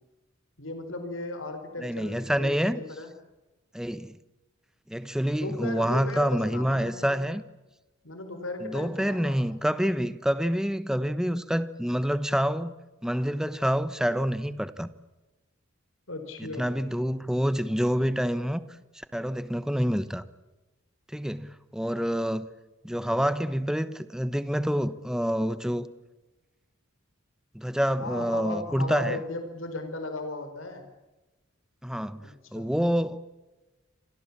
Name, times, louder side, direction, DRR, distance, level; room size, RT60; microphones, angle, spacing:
voice 1, 0.6-3.1 5.3-7.2 8.0-9.4 16.1-16.7 28.0-30.8 32.2-32.7, left 2 dB, 80° left, 4.5 m, -36 dB
voice 2, 1.8-2.8 3.7-4.2 4.9-7.4 8.6-12.7 13.0-14.9 16.4-18.6 19.1-20.2 21.1-22.5 22.8-25.9 27.5-29.2 31.8-33.2, equal, 5° right, 1.1 m, -27 dB
29.0 x 26.0 x 7.3 m
head